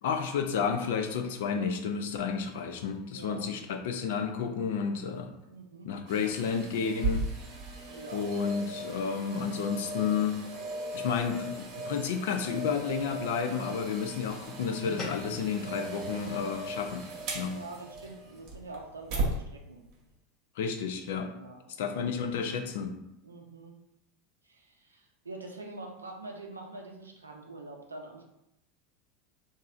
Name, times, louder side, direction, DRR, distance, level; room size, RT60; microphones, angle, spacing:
voice 1, 0.0-5.3 5.8-7.3 8.1-10.4 10.9-17.0 17.3-17.6 20.6-21.3 21.8-22.9, left 6 dB, 70° left, 6 dB, 0.4 m, -31 dB
voice 2, 3.1-3.4 5.5-5.9 7.9-8.9 17.4-19.8 21.3-21.6 23.2-23.8 24.4-28.2, right 2 dB, 90° right, 1 dB, 0.5 m, -45 dB
sound 1, 6.1-19.4 19.9-20.0, right 2 dB, 55° right, 0.9 m, -37 dB
sound 2, 14.8-19.5, left 3 dB, 40° left, 0.7 m, -46 dB
2.9 x 2.6 x 2.4 m, 0.84 s
hypercardioid pair, 80°, 0 cm